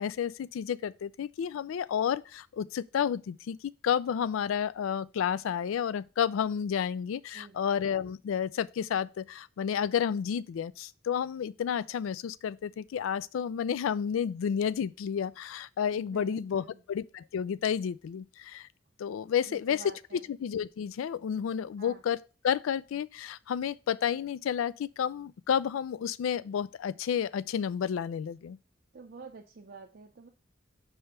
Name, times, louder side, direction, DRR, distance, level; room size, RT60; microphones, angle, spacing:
voice 1, 0.0-18.7 19.0-22.2 22.4-28.6, left 8 dB, 80° left, 0.3 m, -31 dB
voice 2, 15.9-16.8 19.5-20.3 21.8-22.0 28.9-30.3, right 4 dB, 50° right, 0.5 m, -48 dB
5.4 x 3.4 x 5.7 m
head